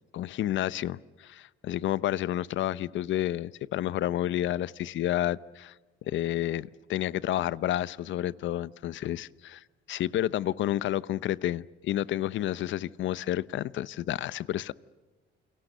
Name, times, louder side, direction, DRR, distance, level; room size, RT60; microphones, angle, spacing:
voice 1, 0.1-5.7 6.1-14.7, left 13 dB, 70° left, 19 dB, 0.8 m, -30 dB
29.0 x 24.5 x 6.7 m, 1.3 s
cardioid pair, 90°, 20 cm